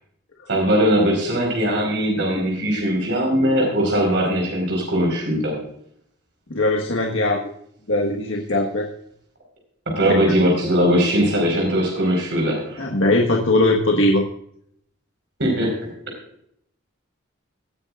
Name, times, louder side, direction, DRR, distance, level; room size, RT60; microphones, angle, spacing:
voice 1, 0.5-5.5 9.9-12.8 15.4-15.7, equal, 70° right, 0 dB, 4.6 m, -20 dB
voice 2, 6.5-7.5 7.9-8.9 10.1-10.3 12.8-14.3, left 2 dB, 85° left, 0 dB, 1.5 m, -20 dB
18.5 x 10.5 x 2.5 m, 0.69 s
head